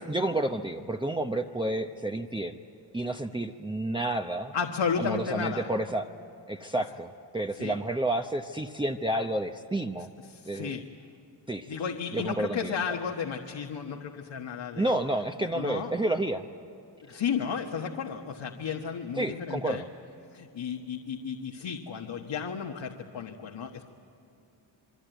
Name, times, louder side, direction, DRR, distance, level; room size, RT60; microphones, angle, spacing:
voice 1, 0.0-2.6 2.9-4.5 5.0-6.1 6.5-10.1 10.5-10.8 11.5-11.8 12.1-12.8 14.7-16.4 19.1-19.9, right 1 dB, 10° right, 2 dB, 0.7 m, -30 dB
voice 2, 4.5-5.7 7.6-7.7 10.3-10.9 11.7-14.9 15.6-15.9 17.1-19.8 20.3-23.9, left 6 dB, 75° left, 1 dB, 1.6 m, -33 dB
27.5 x 23.0 x 9.2 m, 2.8 s
wide cardioid pair, 115°, 44 cm